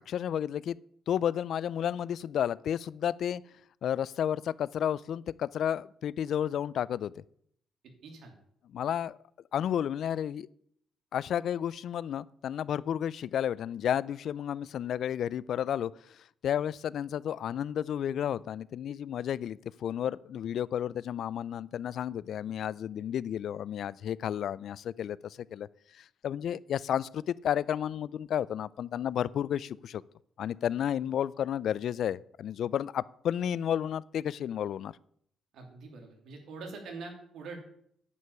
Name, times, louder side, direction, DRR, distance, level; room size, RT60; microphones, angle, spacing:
voice 1, 0.1-0.8 1.1-3.4 3.8-7.1 8.7-9.2 9.5-10.5 11.1-16.2 16.4-25.7 26.0-30.0 30.4-34.9, left 9 dB, 70° left, 21 dB, 0.3 m, -32 dB
voice 2, 8.0-8.3 35.5-37.6, right 4 dB, 75° right, 2 dB, 2.9 m, -44 dB
9.4 x 5.5 x 8.1 m, 0.68 s
cardioid pair, 90°, 0 cm